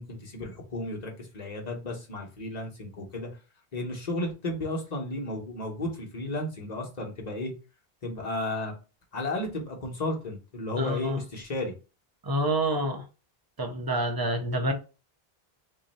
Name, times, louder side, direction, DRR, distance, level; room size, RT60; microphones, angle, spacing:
voice 1, 0.0-3.3 3.7-7.5 8.0-8.7 9.1-11.7, left 2 dB, 45° left, 1.0 m, -33 dB
voice 2, 10.8-11.2 12.2-13.0 13.6-14.7, right 1 dB, 30° right, 0.4 m, -27 dB
3.1 x 2.6 x 4.0 m
omnidirectional pair, 1.0 m